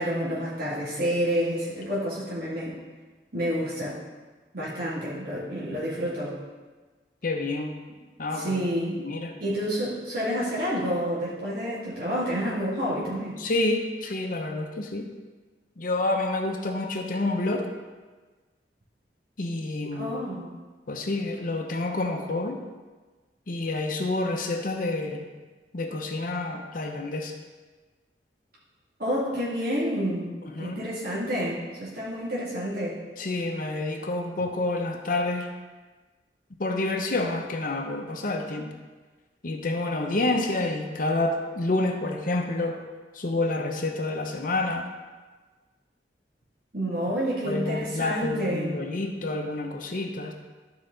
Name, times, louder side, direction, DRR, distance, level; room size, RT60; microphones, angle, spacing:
voice 1, 0.0-2.8 3.3-4.0 4.5-6.4 8.3-9.0 9.4-13.4 19.9-20.5 29.0-30.3 30.6-33.0 46.7-48.7, equal, 55° right, -8 dB, 2.3 m, -29 dB
voice 2, 7.2-7.7 8.2-8.6 9.0-9.4 13.4-15.1 15.8-17.7 19.4-20.1 20.9-22.6 23.5-25.3 25.7-27.3 30.4-30.9 33.2-35.5 36.6-38.7 39.4-42.8 43.1-44.9 47.4-50.3, left 2 dB, 50° left, 3 dB, 0.7 m, -28 dB
12.5 x 4.8 x 3.9 m, 1.3 s
head